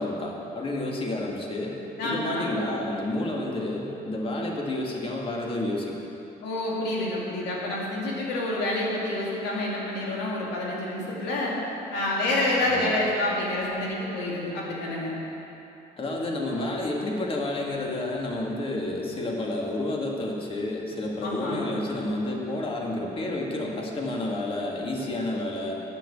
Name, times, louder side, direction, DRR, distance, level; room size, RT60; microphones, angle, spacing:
voice 1, 0.0-1.8 2.0-6.0 12.6-12.8 16.0-25.7, left 2 dB, 30° left, -1 dB, 1.7 m, -30 dB
voice 2, 2.0-2.6 6.4-11.6 11.9-15.2 21.2-21.7, left 1 dB, 85° left, -4 dB, 2.6 m, -28 dB
9.8 x 5.9 x 8.4 m, 3.0 s
cardioid pair, 110°, 17 cm